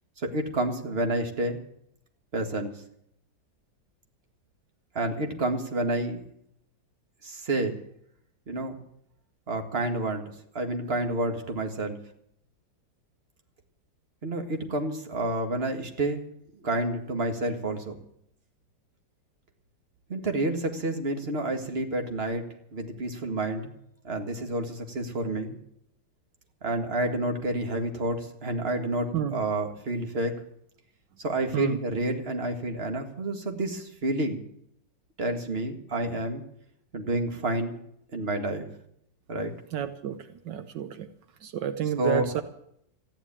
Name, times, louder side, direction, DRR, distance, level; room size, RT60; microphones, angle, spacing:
voice 1, 0.2-1.6 2.3-2.7 4.9-6.2 7.2-7.7 8.5-8.8 9.5-10.2 10.5-12.0 14.2-16.2 16.6-18.0 20.1-22.4 22.7-23.7 24.0-25.6 26.6-30.3 31.2-34.4 35.2-36.4 36.9-37.8 38.1-38.7 39.3-39.5 42.0-42.4, right 2 dB, 35° right, 5 dB, 2.1 m, -29 dB
voice 2, 39.7-40.2 40.4-41.1 41.4-42.4, right 9 dB, 75° right, 10 dB, 1.5 m, -30 dB
14.5 x 11.0 x 8.8 m, 0.72 s
omnidirectional pair, 2.0 m